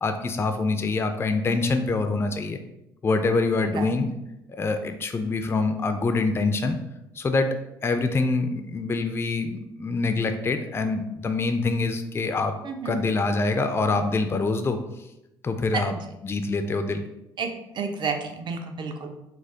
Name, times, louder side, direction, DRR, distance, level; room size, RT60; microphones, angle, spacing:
voice 1, 0.0-2.6 3.0-4.1 4.5-6.8 7.2-7.5 7.8-12.5 12.8-14.8 15.4-15.9 16.2-17.1, left 3 dB, 20° left, 7 dB, 0.4 m, -25 dB
voice 2, 3.7-4.0 12.6-13.0 15.7-15.8 17.4-17.5 17.7-19.1, right 5 dB, 40° right, 5 dB, 0.5 m, -30 dB
4.0 x 2.4 x 2.8 m, 0.89 s
hypercardioid pair, 55°, 11 cm